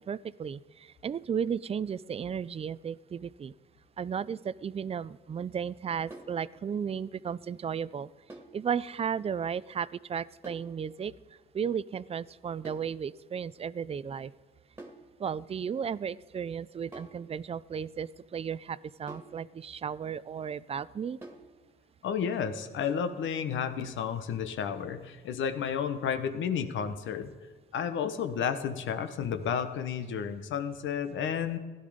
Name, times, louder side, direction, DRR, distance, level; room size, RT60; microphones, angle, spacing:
voice 1, 0.1-3.5 4.0-8.1 8.5-11.1 11.5-14.3 15.2-21.2, right 7 dB, 30° right, 19 dB, 0.4 m, -34 dB
sound 1, 6.1-6.4 8.3-8.6 10.4-10.7 12.6-12.9 14.8-15.1 16.9-17.2 19.1-19.4 21.2-21.5, right 2 dB, 10° right, 2.0 m, -47 dB
voice 2, 22.0-27.3 27.7-31.6, left 7 dB, 75° left, 10 dB, 1.2 m, -32 dB
16.0 x 11.0 x 5.1 m, 1.4 s
cardioid pair, 90°, 20 cm